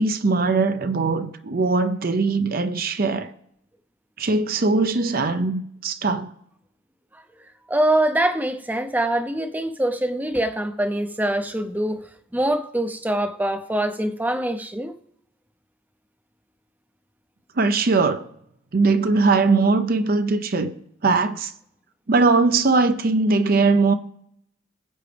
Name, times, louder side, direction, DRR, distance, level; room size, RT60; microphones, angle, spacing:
voice 1, 0.0-3.3 4.2-6.3 17.6-18.3 18.7-20.8 21.0-21.5 22.1-23.9, right 3 dB, 50° right, 0.6 m, -20 dB
voice 2, 7.7-12.0 12.3-15.0, right 1 dB, 10° right, 0.6 m, -24 dB
19.5 x 7.9 x 3.4 m
head